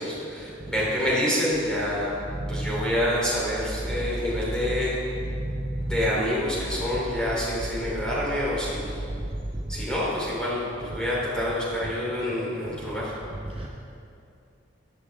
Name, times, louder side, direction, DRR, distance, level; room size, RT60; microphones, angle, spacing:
voice 1, 0.0-2.1 2.5-5.0 5.8-9.0 9.7-13.1, left 1 dB, 5° left, -7 dB, 3.2 m, -27 dB
voice 2, 2.3-2.7 4.6-4.7 5.2-6.0 13.5-13.7, right 1 dB, 30° right, -1 dB, 0.6 m, -31 dB
14.0 x 12.0 x 3.5 m, 2.6 s
head